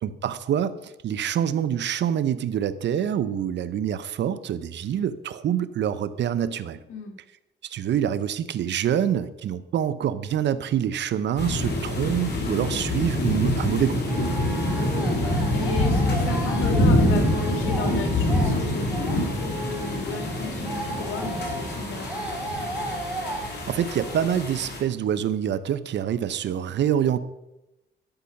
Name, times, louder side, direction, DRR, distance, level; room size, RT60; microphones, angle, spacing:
voice 1, 0.0-6.8 7.6-14.0 23.7-27.2, right 9 dB, 65° right, 14 dB, 0.7 m, -26 dB
sound 1, 11.4-24.8, left 1 dB, 60° left, 3.2 m, -25 dB
sound 2, 14.1-24.2, right 2 dB, 5° right, 3.2 m, -35 dB
voice 2, 14.7-22.2, left 4 dB, 80° left, 4 dB, 2.1 m, -34 dB
12.5 x 6.3 x 5.8 m, 0.93 s
cardioid pair, 90°, 20 cm